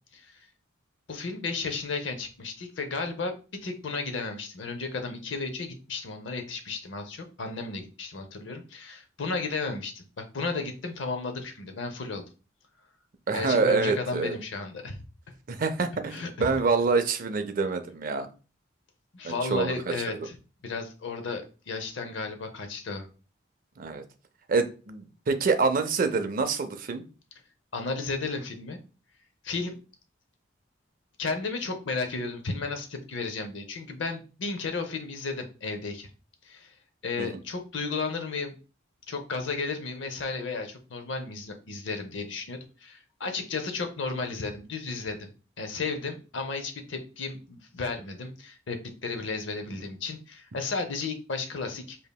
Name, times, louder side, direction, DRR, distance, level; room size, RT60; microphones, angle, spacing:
voice 1, 1.1-3.3 3.6-12.2 13.3-15.0 16.1-16.6 19.1-20.4 20.6-23.1 27.7-28.8 29.4-29.7 31.2-36.1 36.4-36.7 37.0-38.6 39.1-45.3 45.6-52.0, left 4 dB, 65° left, 6 dB, 0.7 m, -33 dB
voice 2, 13.3-14.4 15.5-18.3 19.2-19.9 23.8-24.0 24.5-27.0 37.2-37.3, right 4 dB, 45° right, 8 dB, 0.5 m, -26 dB
5.2 x 2.7 x 2.2 m, 0.35 s
head